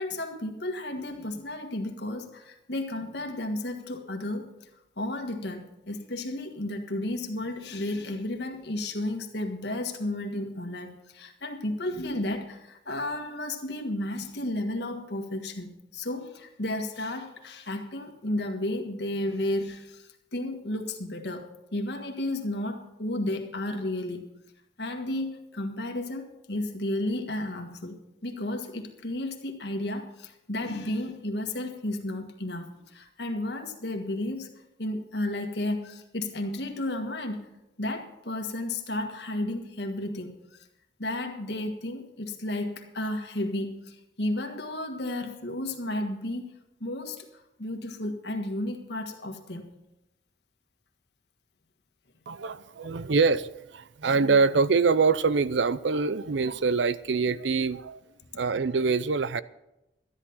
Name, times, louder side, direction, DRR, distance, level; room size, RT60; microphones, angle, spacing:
voice 1, 0.0-4.5 5.0-24.3 24.8-34.5 34.8-37.5 37.8-40.6 41.0-46.5 46.8-47.3 47.6-49.7, left 1 dB, 65° left, 1.6 m, -33 dB
voice 2, 52.3-58.0 58.3-59.4, right 4 dB, 80° right, 0.5 m, -24 dB
13.0 x 11.0 x 5.6 m
head